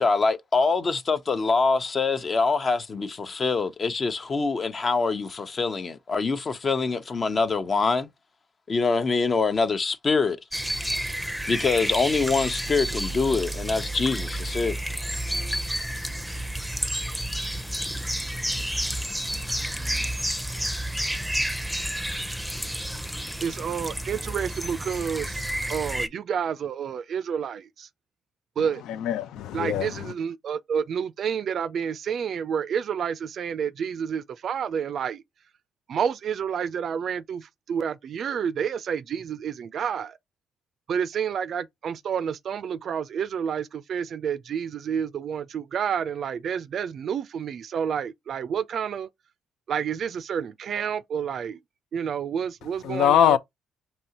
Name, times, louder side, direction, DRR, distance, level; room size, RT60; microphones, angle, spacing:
voice 1, 0.0-8.1 8.7-10.4 11.5-14.8, left 4 dB, 45° left, 0.8 m, -24 dB
sound 1, 10.5-26.1, right 1 dB, ahead, 0.6 m, -30 dB
voice 2, 23.4-25.4 25.7-27.9 28.6-28.8 29.5-35.2 35.9-40.2 40.9-49.1 49.7-51.6 51.9-53.4, right 7 dB, 60° right, 0.4 m, -29 dB
voice 3, 28.9-30.1 52.8-53.4, left 11 dB, 75° left, 0.4 m, -22 dB
5.3 x 2.8 x 2.9 m
supercardioid pair, 55°, 0 cm